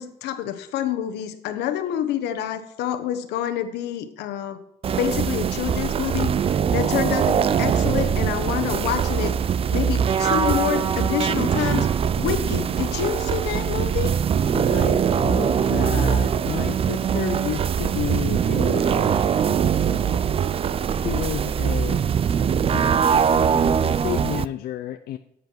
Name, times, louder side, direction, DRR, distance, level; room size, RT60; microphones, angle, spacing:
voice 1, 0.0-4.6 5.0-6.3 6.7-9.3 9.7-11.9 12.2-14.2, left 11 dB, 85° left, 9 dB, 1.3 m, -27 dB
sound 1, 4.8-24.5, right 7 dB, 35° right, 0.4 m, -22 dB
voice 2, 14.5-20.2 20.9-22.0 22.6-25.2, left 12 dB, 65° left, 8 dB, 0.6 m, -32 dB
10.5 x 8.1 x 4.5 m, 0.78 s
cardioid pair, 110°, 17 cm